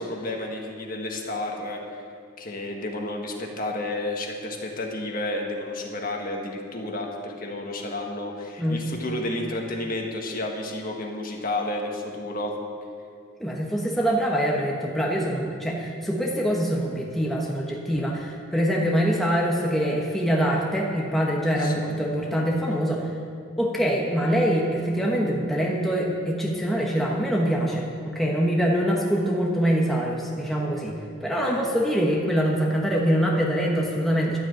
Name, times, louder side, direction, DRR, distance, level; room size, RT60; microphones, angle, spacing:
voice 1, 0.0-2.0 2.4-12.5 21.6-22.0 31.4-31.6, left 1 dB, 40° left, 1 dB, 1.6 m, -31 dB
voice 2, 13.4-23.1 23.6-34.4, equal, ahead, -3 dB, 1.2 m, -24 dB
12.0 x 8.1 x 8.9 m, 2.3 s
head